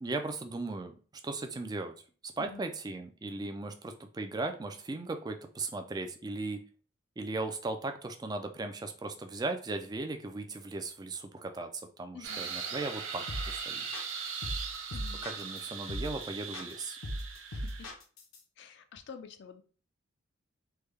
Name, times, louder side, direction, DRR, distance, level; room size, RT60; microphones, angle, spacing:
voice 1, 0.0-0.9 1.2-1.9 2.2-6.6 7.2-11.7 12.0-13.8 15.2-17.0, right 2 dB, 20° right, 6 dB, 0.3 m, -37 dB
voice 2, 12.1-12.5 14.9-15.2 17.5-17.9 18.6-19.6, left 6 dB, 60° left, 8 dB, 0.4 m, -48 dB
sound 1, 12.2-17.9, right 6 dB, 70° right, 0.6 m, -39 dB
sound 2, 13.3-13.6 13.9-15.6 15.9-16.2 16.5-18.4, equal, 85° left, 0.7 m, -38 dB
3.4 x 2.2 x 3.2 m, 0.39 s
head